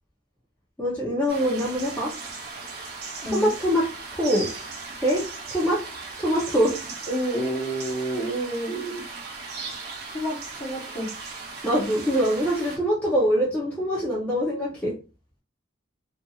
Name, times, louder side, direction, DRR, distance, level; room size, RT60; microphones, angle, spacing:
voice 1, 0.8-2.1 3.3-3.8 4.1-4.5 5.0-5.2 5.5-5.8 6.2-6.8 11.6-14.9, equal, 10° left, -6 dB, 0.6 m, -23 dB
sound 1, 1.3-12.8, right 4 dB, 50° right, 0.7 m, -38 dB
voice 2, 7.1-9.0 10.1-11.1, right 1 dB, 30° left, -2 dB, 0.9 m, -29 dB
2.8 x 2.5 x 2.3 m, 0.33 s
head